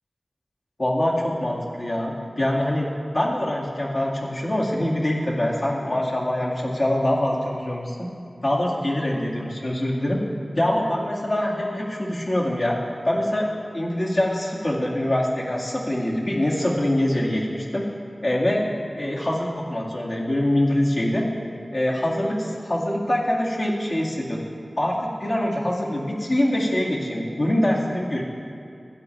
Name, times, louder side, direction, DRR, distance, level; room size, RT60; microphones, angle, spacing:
voice 1, 0.8-8.1 8.4-10.2 10.6-12.8 13.0-13.5 13.7-17.8 18.2-18.7 19.0-21.3 21.7-24.5 24.8-28.2, left 1 dB, 60° left, -4 dB, 2.2 m, -24 dB
15.5 x 10.5 x 3.3 m, 2.5 s
wide cardioid pair, 55°, 0 cm